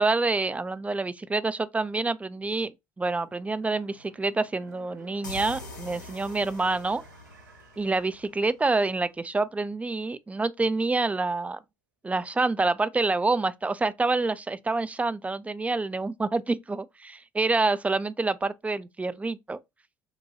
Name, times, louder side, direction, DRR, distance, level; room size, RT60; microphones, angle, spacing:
voice 1, 0.0-7.0 7.8-11.6 12.0-19.6, right 3 dB, 15° right, 0.4 m, -27 dB
sound 1, 3.2-8.7 9.1-9.2, right 4 dB, 85° right, 0.6 m, -53 dB
sound 2, 5.2-8.8, left 3 dB, 85° left, 0.9 m, -44 dB
5.7 x 2.2 x 2.8 m
figure-of-eight pair, 60°, 10 cm